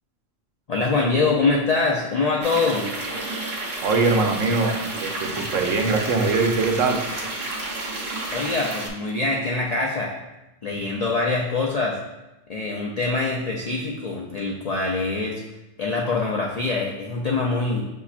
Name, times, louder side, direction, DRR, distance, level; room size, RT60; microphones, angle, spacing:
voice 1, 0.7-2.9 8.3-10.2 10.6-12.0 12.5-15.4 15.8-17.8, left 3 dB, 75° left, -2 dB, 0.3 m, -24 dB
sound 1, 2.4-8.9, right 2 dB, 55° right, 1.1 m, -31 dB
voice 2, 3.8-4.7 5.0-7.0, right 3 dB, 85° right, 2 dB, 1.1 m, -22 dB
6.9 x 2.8 x 2.4 m, 0.97 s
omnidirectional pair, 1.3 m